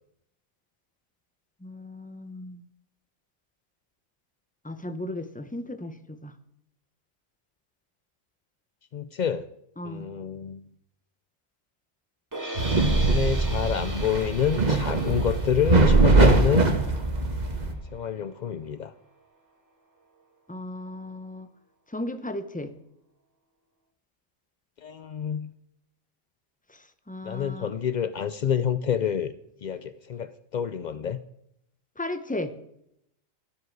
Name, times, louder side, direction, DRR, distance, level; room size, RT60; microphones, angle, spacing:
voice 1, 1.6-2.6 4.6-6.3 9.8-10.1 20.5-21.5 21.9-22.7 26.7-27.7 32.0-32.5, left 1 dB, 10° left, 10 dB, 0.6 m, -35 dB
voice 2, 8.9-9.5 9.8-10.6 13.0-16.7 17.9-18.9 24.8-25.5 27.2-29.3 29.6-31.2, left 8 dB, 75° left, 13 dB, 0.4 m, -28 dB
sound 1, 12.3-18.5, right 1 dB, 15° right, 1.8 m, -40 dB
sound 2, 12.6-17.7, right 3 dB, 35° right, 1.5 m, -21 dB
12.5 x 12.5 x 4.7 m, 0.77 s
omnidirectional pair, 1.4 m